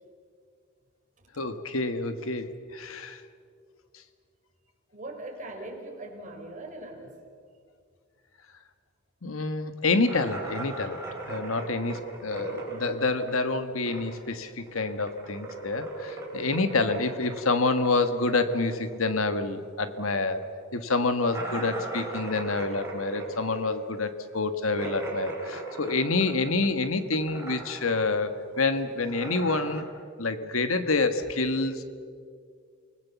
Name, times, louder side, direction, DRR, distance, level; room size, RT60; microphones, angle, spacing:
voice 1, 1.4-3.2 9.2-11.0 11.3-20.4 20.7-29.9 30.2-31.8, left 3 dB, 80° left, 10 dB, 1.5 m, -27 dB
voice 2, 4.9-7.2, right 2 dB, 40° right, 1 dB, 4.3 m, -40 dB
sound 1, 10.0-14.3 14.6-19.6 19.9-20.0 20.4-20.5 21.3-26.8 27.1-28.1 28.3-29.8, right 2 dB, 15° right, 4.8 m, -38 dB
29.0 x 20.0 x 7.1 m, 2.2 s
head